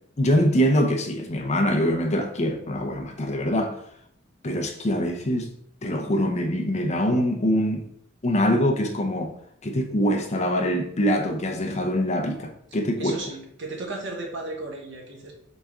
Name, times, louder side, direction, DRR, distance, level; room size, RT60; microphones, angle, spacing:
voice 1, 0.2-3.8 4.4-5.5 5.8-7.9 8.2-9.4 9.6-13.2, equal, 35° left, 0.6 m, -24 dB
voice 2, 13.0-15.3, right 2 dB, 60° right, 1.1 m, -35 dB
4.1 x 3.5 x 3.5 m
head